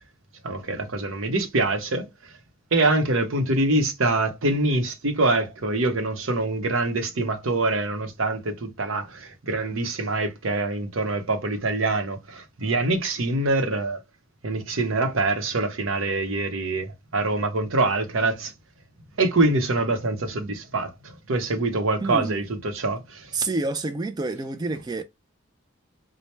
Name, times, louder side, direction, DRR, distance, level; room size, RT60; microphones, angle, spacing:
voice 1, 0.4-2.1 2.7-14.0 14.4-18.5 19.2-23.3, right 2 dB, 75° right, 0.8 m, -25 dB
voice 2, 22.0-22.4 23.3-25.0, right 3 dB, 20° right, 0.3 m, -28 dB
4.3 x 2.1 x 3.2 m
head